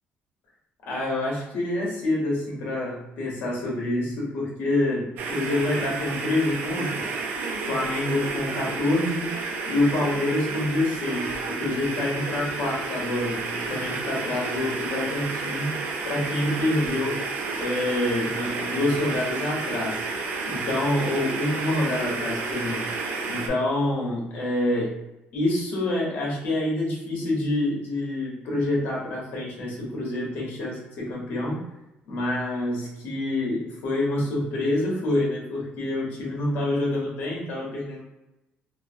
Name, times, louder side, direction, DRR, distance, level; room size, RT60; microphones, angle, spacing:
voice 1, 0.9-7.1 7.7-9.3 9.7-15.7 16.0-17.2 17.6-20.0 20.5-22.8 23.3-24.9 25.3-31.6 32.1-38.0, left 1 dB, 65° left, -3 dB, 1.0 m, -27 dB
sound 1, 5.2-23.5, right 4 dB, 70° right, 0.4 m, -31 dB
2.9 x 2.0 x 2.6 m, 0.95 s
cardioid pair, 150°, 4 cm